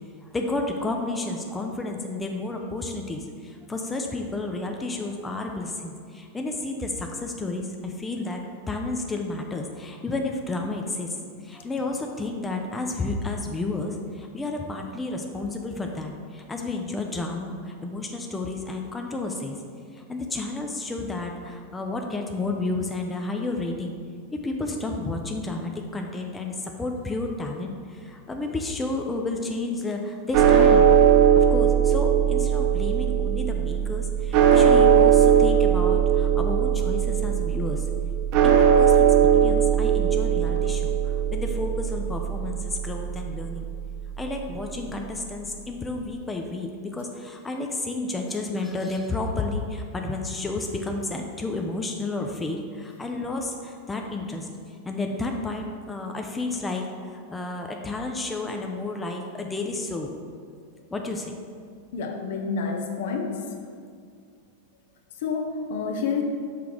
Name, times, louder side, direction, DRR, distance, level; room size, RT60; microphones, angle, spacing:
voice 1, 0.2-8.4 8.7-19.6 19.9-24.0 24.3-31.0 31.4-37.9 38.4-43.7 44.2-60.1 60.9-61.4, left 2 dB, 10° left, 2 dB, 0.4 m, -31 dB
sound 1, 30.3-44.6, right 8 dB, 45° right, 0.5 m, -20 dB
voice 2, 61.9-63.4 65.2-66.2, left 5 dB, 55° left, 4 dB, 0.6 m, -28 dB
5.8 x 3.4 x 4.8 m, 2.2 s
figure-of-eight pair, 90°, 0 cm